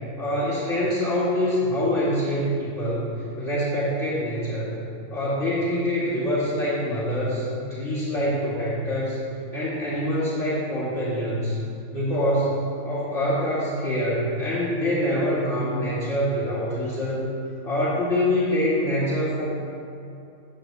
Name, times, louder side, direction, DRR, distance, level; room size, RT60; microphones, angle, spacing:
voice 1, 0.2-4.7 5.1-9.2 9.5-11.6 11.9-17.2 17.6-19.5, equal, 55° left, -10 dB, 3.0 m, -25 dB
14.5 x 8.2 x 3.4 m, 2.5 s
omnidirectional pair, 1.5 m